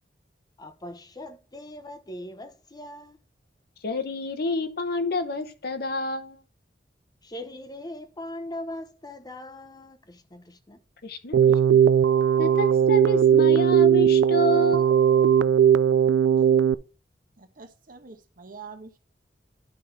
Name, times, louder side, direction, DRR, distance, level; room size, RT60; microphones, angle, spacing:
voice 1, 0.6-3.2 7.2-10.8, left 1 dB, 25° left, 0.8 m, -40 dB
voice 2, 3.8-6.4 11.0-11.4 11.7-11.8 12.4-15.0, left 2 dB, 60° left, 0.9 m, -28 dB
Keyboard (musical), 11.3-16.7, right 8 dB, 75° right, 0.3 m, -18 dB
voice 3, 17.4-19.0, right 5 dB, 50° right, 1.1 m, -45 dB
11.0 x 4.1 x 4.5 m
head